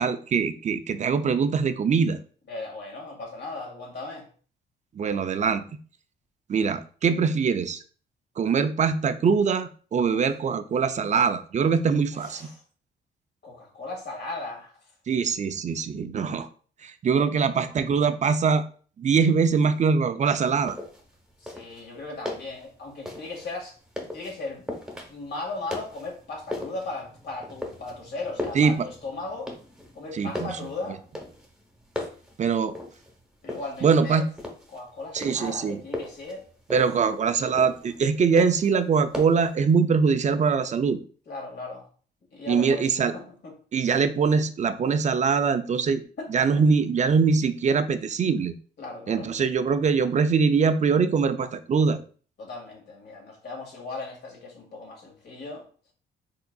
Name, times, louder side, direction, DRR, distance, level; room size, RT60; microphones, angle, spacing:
voice 1, 0.0-2.2 5.0-5.6 6.5-7.8 8.4-12.5 15.1-16.5 16.8-18.6 19.0-20.8 28.5-28.9 30.1-30.5 32.4-32.7 33.8-34.2 35.1-35.8 36.7-41.0 42.5-43.1 43.7-46.0 46.3-48.5 49.1-52.0, right 5 dB, 35° right, 11 dB, 0.4 m, -23 dB
voice 2, 2.5-4.3 10.1-10.2 12.1-12.5 13.4-14.7 17.2-17.4 21.4-24.6 25.1-29.5 29.9-31.0 32.0-32.1 33.4-34.2 34.7-36.4 41.3-41.9 42.3-42.8 43.1-43.5 46.2-46.3 46.5-46.6 48.8-49.3 52.4-55.6, left 2 dB, 60° left, -1 dB, 2.0 m, -37 dB
sound 1, 20.4-39.6, left 1 dB, 5° right, 1.0 m, -39 dB
4.4 x 3.7 x 2.3 m, 0.42 s
cardioid pair, 90°, 20 cm